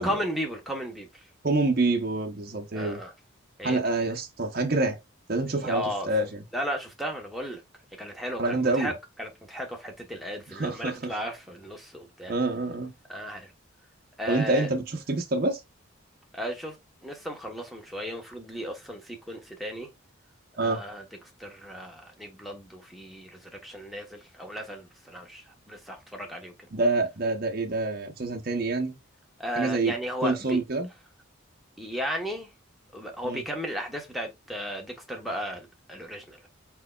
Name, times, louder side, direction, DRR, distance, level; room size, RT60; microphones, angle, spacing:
voice 1, 0.0-1.3 2.7-3.1 3.6-4.1 5.6-6.1 6.5-7.6 8.0-12.3 13.1-13.5 14.2-14.7 16.3-16.8 17.0-19.9 20.5-21.1 21.4-26.5 29.4-30.6 31.8-32.5 32.9-36.5, equal, ahead, 1.0 m, -35 dB
voice 2, 1.4-3.0 3.6-5.0 5.3-6.4 8.4-8.9 10.5-10.9 12.3-12.9 14.3-15.6 20.6-20.8 26.7-29.0 29.5-29.9 30.2-30.9 33.2-33.4, right 2 dB, 45° right, 0.7 m, -26 dB
4.6 x 4.4 x 2.3 m
head